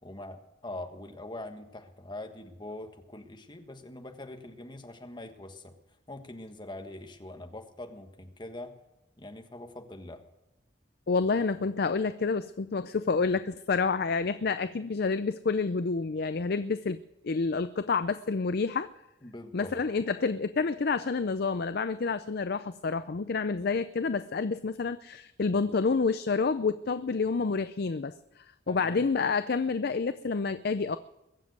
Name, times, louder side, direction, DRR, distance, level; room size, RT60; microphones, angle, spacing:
voice 1, 0.0-5.7 6.1-8.7 9.2-10.2 19.2-19.8 28.7-29.0, left 1 dB, 25° left, 5 dB, 1.5 m, -43 dB
voice 2, 11.1-17.0 17.2-18.9 19.5-31.0, left 4 dB, 55° left, 12 dB, 0.5 m, -29 dB
22.0 x 7.4 x 7.9 m, 0.93 s
head